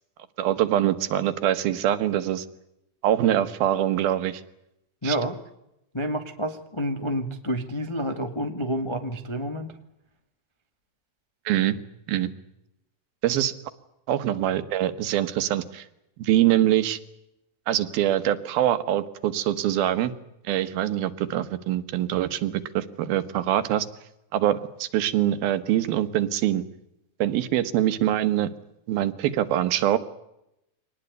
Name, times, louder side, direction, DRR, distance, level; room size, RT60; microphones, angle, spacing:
voice 1, 0.4-2.5 3.0-4.4 5.0-5.2 11.5-11.8 12.1-12.3 13.2-13.5 14.1-15.9 16.2-17.0 17.7-20.1 20.4-23.9 24.3-26.6 27.2-28.5 28.9-30.0, right 12 dB, 85° right, 12 dB, 3.2 m, -24 dB
voice 2, 5.0-5.4 5.9-9.7, equal, 40° left, 6 dB, 0.4 m, -29 dB
25.0 x 19.5 x 9.4 m, 0.85 s
omnidirectional pair, 4.2 m